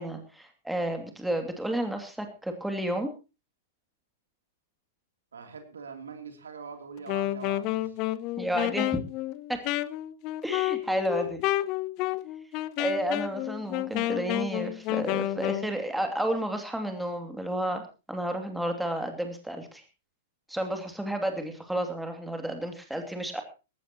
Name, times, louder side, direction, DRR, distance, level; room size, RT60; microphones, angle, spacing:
voice 1, 0.0-3.1 8.4-9.1 9.5-9.6 10.4-11.4 12.8-17.8 18.1-19.8 20.5-23.4, right 1 dB, 5° right, 5 dB, 2.7 m, -31 dB
voice 2, 5.3-8.0, right 5 dB, 75° right, 5 dB, 3.1 m, -43 dB
Wind instrument woodwind instrument, 7.0-15.7, left 16 dB, 40° left, 0.7 m, -30 dB
19.0 x 15.0 x 3.0 m, 0.31 s
figure-of-eight pair, 105°, 0 cm